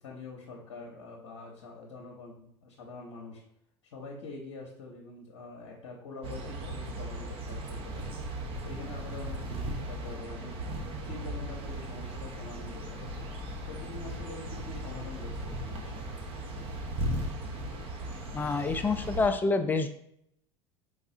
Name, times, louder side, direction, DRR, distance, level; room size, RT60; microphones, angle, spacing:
voice 1, 0.0-3.4 3.9-8.3 8.6-10.5 11.0-13.2 13.7-16.1, left 3 dB, 70° left, -2 dB, 0.7 m, -45 dB
sound 1, 6.2-19.3, right 1 dB, 40° right, 0.7 m, -37 dB
voice 2, 18.3-19.9, left 3 dB, 10° left, 8 dB, 0.3 m, -27 dB
3.9 x 3.4 x 2.7 m, 0.73 s
figure-of-eight pair, 75°, 15 cm